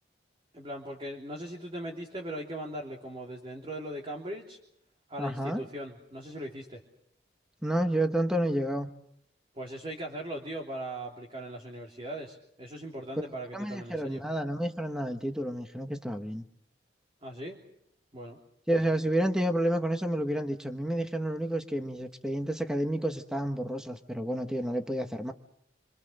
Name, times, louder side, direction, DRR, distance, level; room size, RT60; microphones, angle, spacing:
voice 1, 0.5-4.6 5.1-6.8 9.5-14.2 17.2-17.6 18.1-18.4, right 1 dB, 30° right, 0 dB, 3.2 m, -39 dB
voice 2, 5.2-5.6 7.6-8.9 13.5-16.4 18.7-25.3, right 1 dB, 5° right, 6 dB, 1.2 m, -30 dB
28.5 x 25.0 x 6.6 m, 0.71 s
head